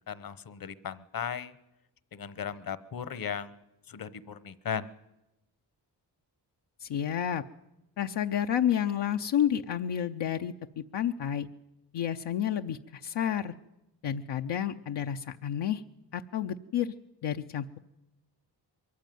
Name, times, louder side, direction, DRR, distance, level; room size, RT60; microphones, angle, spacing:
voice 1, 0.1-1.5 2.1-3.6 3.9-4.9, left 7 dB, 55° left, 17 dB, 1.0 m, -37 dB
voice 2, 6.8-7.4 8.0-11.5 11.9-13.6 14.0-15.8 16.1-16.9 17.2-17.8, left 9 dB, 80° left, 5 dB, 0.7 m, -30 dB
22.5 x 14.5 x 9.3 m, 0.93 s
cardioid pair, 85°, 41 cm